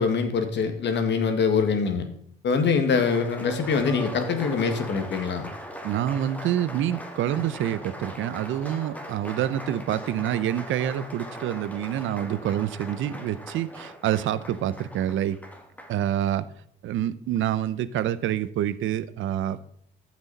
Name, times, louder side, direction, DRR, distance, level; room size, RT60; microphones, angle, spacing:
voice 1, 0.0-2.1 2.4-5.5, left 5 dB, 65° left, 7 dB, 1.8 m, -24 dB
Applause, 2.7-16.0, equal, 5° left, 2.0 m, -40 dB
voice 2, 5.8-15.4 15.9-16.4 16.8-19.6, right 11 dB, 75° right, 15 dB, 0.7 m, -27 dB
14.5 x 6.2 x 4.1 m, 0.66 s
cardioid pair, 90°, 20 cm